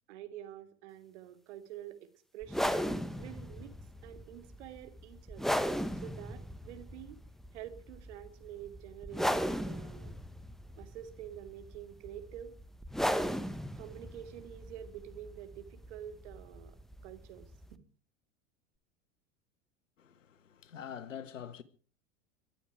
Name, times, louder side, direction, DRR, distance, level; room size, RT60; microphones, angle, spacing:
voice 1, 0.1-2.0 2.3-2.8 3.1-3.7 4.0-5.6 6.0-7.2 7.5-10.1 10.8-12.5 13.8-16.8 17.0-17.8, right 11 dB, 65° right, 2.8 m, -47 dB
sound 1, 2.4-17.7, equal, ahead, 1.3 m, -37 dB
voice 2, 20.0-21.6, left 8 dB, 85° left, 1.6 m, -45 dB
24.0 x 12.0 x 4.9 m
hypercardioid pair, 85°, 37 cm